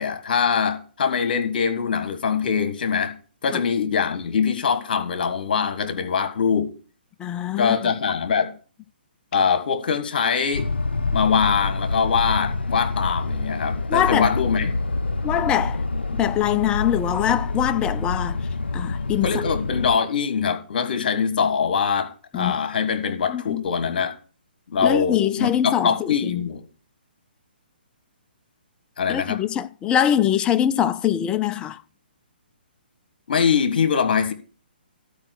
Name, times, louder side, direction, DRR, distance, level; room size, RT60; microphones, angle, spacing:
voice 1, 0.0-3.1 3.4-6.7 7.6-8.5 9.3-10.7 11.1-14.7 19.2-24.1 24.7-26.6 29.0-29.4 33.3-34.3, left 6 dB, 55° left, 1.6 m, -23 dB
voice 2, 7.2-7.9 13.9-14.3 15.2-15.8 16.1-18.5 18.7-19.3 22.3-22.6 23.3-23.6 24.8-26.5 29.1-31.8, left 10 dB, 15° left, 0.5 m, -23 dB
sound 1, 10.5-20.0, left 3 dB, 90° left, 0.5 m, -27 dB
12.0 x 4.9 x 6.2 m
figure-of-eight pair, 135°, 6 cm